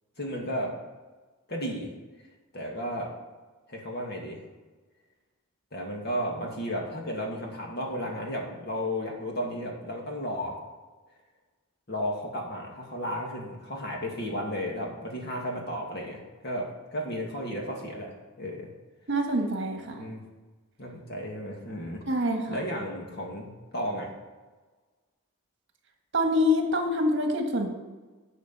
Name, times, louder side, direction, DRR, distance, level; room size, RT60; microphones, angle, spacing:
voice 1, 0.2-0.7 1.5-1.9 2.5-3.1 3.7-4.4 5.7-10.6 11.9-18.1 18.4-18.7 19.9-20.2 20.8-22.2 22.5-24.1, equal, 50° left, 0 dB, 2.1 m, -33 dB
voice 2, 19.1-20.0 22.1-22.6 26.1-27.7, left 1 dB, 55° right, 3 dB, 1.7 m, -26 dB
11.0 x 5.0 x 7.5 m, 1.3 s
head